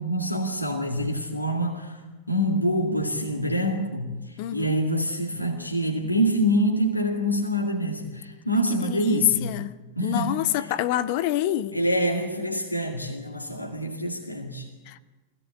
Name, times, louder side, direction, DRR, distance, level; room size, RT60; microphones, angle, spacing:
voice 1, 0.0-2.0 2.3-9.6 10.0-10.7 11.7-14.7, equal, 85° left, 2.2 m, -26 dB
voice 2, 4.4-4.7 8.8-9.7 10.0-11.8 14.9-15.0, left 13 dB, 45° left, 0.8 m, -26 dB
23.0 x 17.0 x 8.3 m
figure-of-eight pair, 90°, 0 cm